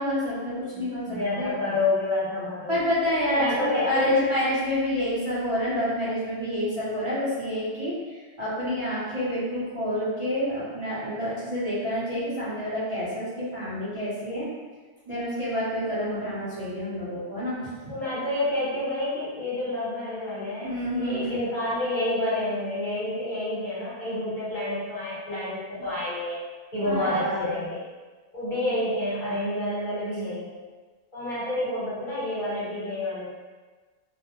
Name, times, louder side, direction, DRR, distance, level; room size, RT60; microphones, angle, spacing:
voice 1, 0.0-1.5 2.7-14.5 15.1-18.0 20.6-21.3 26.8-27.6, equal, 35° right, -12 dB, 0.7 m, -28 dB
voice 2, 0.7-2.7 3.4-4.2 17.9-26.4 26.7-27.8 28.3-30.6 31.1-33.3, left 2 dB, 50° left, -9 dB, 1.0 m, -29 dB
2.3 x 2.1 x 2.9 m, 1.3 s
omnidirectional pair, 1.1 m